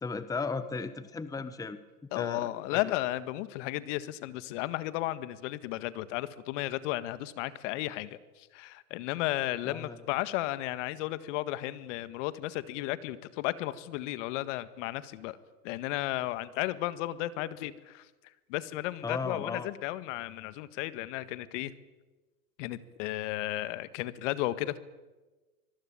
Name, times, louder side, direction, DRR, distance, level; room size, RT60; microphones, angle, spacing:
voice 1, 0.0-1.8 2.2-2.8 9.6-10.0 19.0-19.7, left 4 dB, 10° left, 13 dB, 1.1 m, -35 dB
voice 2, 2.1-15.4 15.6-18.1 18.5-21.7 22.6-24.8, left 16 dB, 50° left, 14 dB, 1.8 m, -34 dB
25.0 x 21.5 x 8.8 m, 1.2 s
hypercardioid pair, 115°, 45 cm